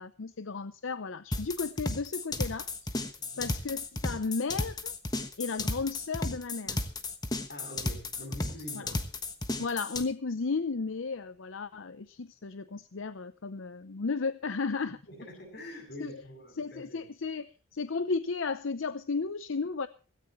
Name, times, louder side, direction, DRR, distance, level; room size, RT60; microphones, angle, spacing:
voice 1, 0.0-3.1 3.4-4.9 5.4-6.8 8.7-8.9 9.6-15.0 16.0-16.1 16.6-19.9, left 4 dB, 75° left, 13 dB, 0.7 m, -34 dB
sound 1, 1.3-10.0, left 2 dB, 20° left, 1.3 m, -33 dB
voice 2, 3.2-3.5 7.5-8.9 15.1-17.0, left 1 dB, 50° left, 4 dB, 7.9 m, -45 dB
17.5 x 16.5 x 3.1 m, 0.36 s
head